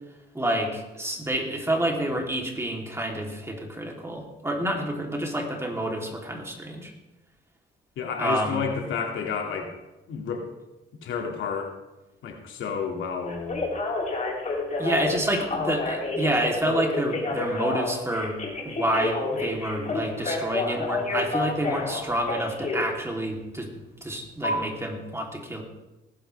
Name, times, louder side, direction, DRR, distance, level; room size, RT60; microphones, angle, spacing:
voice 1, 0.3-6.9 8.2-8.7 14.8-18.4 18.6-23.7 24.0-25.6, right 1 dB, 15° right, 0 dB, 3.0 m, -28 dB
voice 2, 8.0-9.7 10.1-10.5 11.0-11.7 12.2-13.7, left 6 dB, 75° left, 2 dB, 2.2 m, -30 dB
Telephone, 13.3-22.9 24.4-24.6, left 3 dB, 40° left, 4.2 m, -29 dB
19.5 x 11.0 x 3.4 m, 1.0 s
cardioid pair, 90°, 20 cm